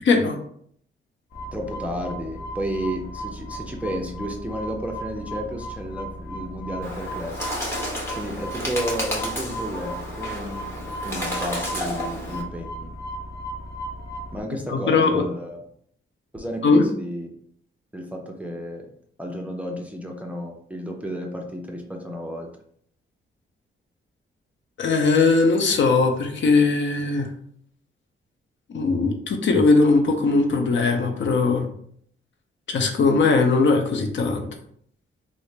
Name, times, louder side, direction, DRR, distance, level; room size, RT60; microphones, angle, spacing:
voice 1, 0.0-0.4 14.7-15.2 16.6-16.8 24.8-27.3 28.7-31.7 32.7-34.5, left 3 dB, 65° left, 4 dB, 0.6 m, -19 dB
sound 1, 1.3-14.4, equal, 50° left, 1.0 m, -36 dB
voice 2, 1.5-7.4 8.2-12.9 14.3-15.6 16.3-17.3 17.9-18.9 19.2-22.5, equal, 5° right, 1 dB, 0.5 m, -32 dB
Bird, 6.8-12.4, equal, 10° left, 1.1 m, -31 dB
3.7 x 2.1 x 3.2 m, 0.64 s
cardioid pair, 105°, 21 cm